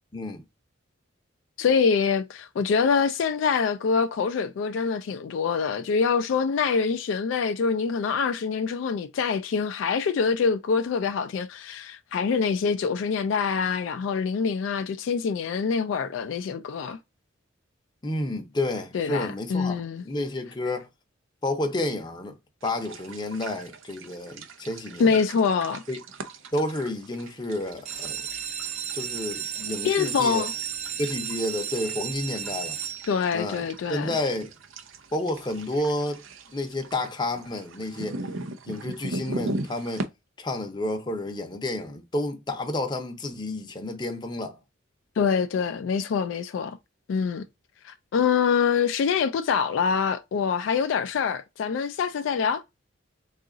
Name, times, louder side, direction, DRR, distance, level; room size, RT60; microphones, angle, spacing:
voice 1, 0.1-0.4 18.0-19.8 20.0-20.9 21.4-22.4 22.6-25.2 25.9-26.0 26.5-28.2 28.9-30.4 31.0-32.8 33.3-34.5 35.1-36.2 36.5-38.2 38.7-40.1 40.4-44.6, left 1 dB, 25° left, 0.6 m, -30 dB
voice 2, 1.6-17.0 18.9-20.0 25.0-25.8 29.8-30.5 33.1-34.2 45.2-46.8 47.1-47.5 47.8-52.6, left 6 dB, 70° left, 0.3 m, -25 dB
sound 1, 22.6-40.1, right 2 dB, 85° right, 0.5 m, -39 dB
sound 2, 27.7-33.5 34.1-34.6 35.0-35.1 35.3-35.4 35.8-36.0, right 8 dB, 35° right, 0.5 m, -34 dB
3.8 x 2.4 x 3.7 m
head